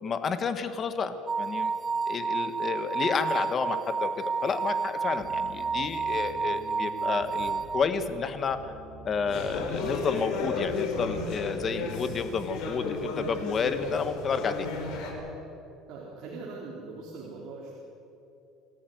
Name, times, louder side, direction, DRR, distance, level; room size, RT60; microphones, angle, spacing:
voice 1, 0.0-1.7 2.1-4.1 4.4-8.7 9.0-14.7, left 5 dB, 25° left, 9 dB, 1.5 m, -30 dB
sound 1, 1.3-7.8, right 5 dB, 20° right, 0.5 m, -30 dB
sound 2, 5.2-11.7, right 3 dB, 35° right, 6.0 m, -47 dB
sound 3, 9.3-15.1, left 3 dB, 60° left, 5.3 m, -33 dB
voice 2, 15.9-17.7, right 3 dB, 55° right, -4 dB, 3.9 m, -42 dB
27.0 x 14.0 x 9.4 m, 2.8 s
cardioid pair, 155°, 0 cm